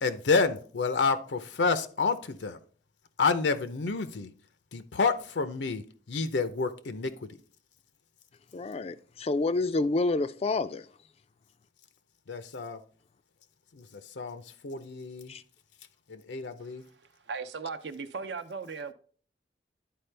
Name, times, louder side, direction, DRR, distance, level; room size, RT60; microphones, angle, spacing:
voice 1, 0.0-2.6 3.2-4.3 4.7-7.3 12.3-12.8 13.7-15.3 16.1-16.8, left 4 dB, 80° left, 0.6 m, -29 dB
voice 2, 8.5-10.9 15.3-15.4, left 3 dB, 35° left, 0.3 m, -28 dB
voice 3, 17.2-18.9, right 5 dB, 75° right, 0.6 m, -37 dB
10.5 x 4.6 x 3.3 m
head